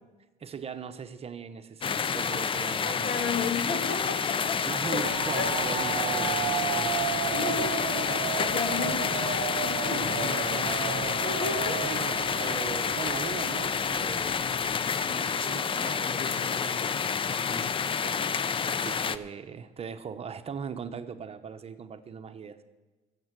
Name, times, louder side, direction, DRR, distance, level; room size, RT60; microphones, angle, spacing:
voice 1, 0.4-3.5 4.6-7.0 9.9-11.2 11.8-14.4 15.1-17.7 18.0-22.6, right 6 dB, 35° right, 10 dB, 0.9 m, -40 dB
sound 1, 1.8-19.2, left 6 dB, 30° left, 0.5 m, -29 dB
voice 2, 2.8-5.5 7.2-10.0 11.2-11.8, left 5 dB, 65° left, 5 dB, 2.1 m, -34 dB
sound 2, 5.0-15.1, right 17 dB, 85° right, 0.5 m, -35 dB
15.0 x 7.4 x 8.1 m, 1.2 s
cardioid pair, 110°, 17 cm